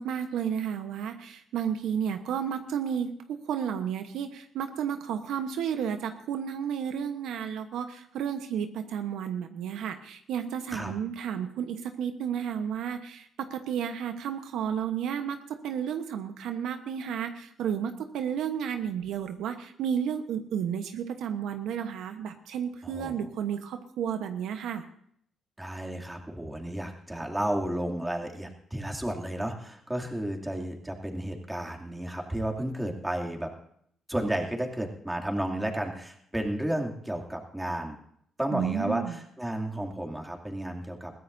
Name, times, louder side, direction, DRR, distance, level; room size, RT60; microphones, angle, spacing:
voice 1, 0.0-24.8 38.5-39.2, right 8 dB, 80° right, 7 dB, 1.1 m, -32 dB
voice 2, 22.8-23.2 25.6-33.5 34.1-38.0 38.4-41.1, right 1 dB, 10° right, 1 dB, 2.6 m, -32 dB
22.0 x 15.5 x 2.7 m, 0.66 s
cardioid pair, 90°, 0 cm